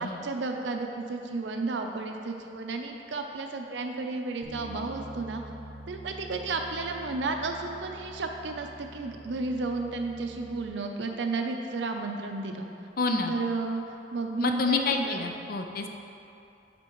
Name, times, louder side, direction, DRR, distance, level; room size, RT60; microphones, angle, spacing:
voice 1, 0.0-5.4 5.9-12.7 13.3-13.8 14.1-15.2, right 3 dB, 85° right, 4 dB, 0.6 m, -32 dB
Bass guitar, 4.4-10.7, equal, 35° right, 0.8 m, -45 dB
voice 2, 13.0-13.3 14.4-15.9, left 3 dB, 55° left, 4 dB, 0.5 m, -28 dB
10.5 x 4.3 x 3.1 m, 2.7 s
head